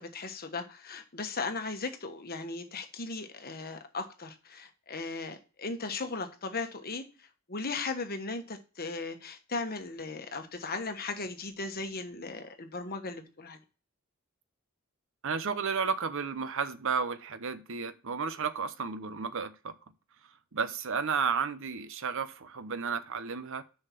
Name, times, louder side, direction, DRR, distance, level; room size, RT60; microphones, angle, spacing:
voice 1, 0.0-7.0 7.5-13.6, left 3 dB, 45° left, 1.3 m, -37 dB
voice 2, 15.2-19.7 20.5-23.6, right 5 dB, 65° right, 0.8 m, -32 dB
6.6 x 5.7 x 5.7 m
head